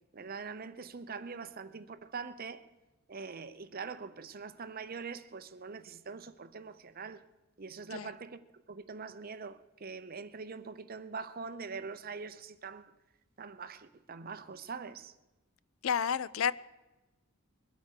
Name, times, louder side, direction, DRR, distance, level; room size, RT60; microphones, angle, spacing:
voice 1, 0.1-2.6 3.1-7.2 7.6-8.4 8.7-12.9 13.4-15.1, right 5 dB, 45° right, 0.7 m, -43 dB
voice 2, 15.8-16.5, left 7 dB, 75° left, 0.5 m, -30 dB
22.5 x 8.1 x 6.5 m
head